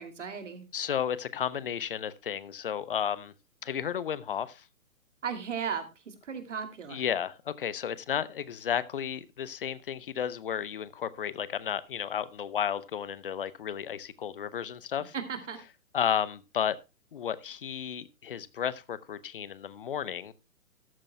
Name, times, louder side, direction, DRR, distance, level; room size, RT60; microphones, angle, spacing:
voice 1, 0.0-0.6 5.2-7.1 15.1-15.6, right 7 dB, 55° right, 2.7 m, -36 dB
voice 2, 0.7-3.3 3.6-4.7 6.9-15.1 15.9-16.8 17.1-20.3, left 8 dB, 40° left, 0.8 m, -33 dB
14.0 x 12.0 x 2.2 m
figure-of-eight pair, 130°, 43 cm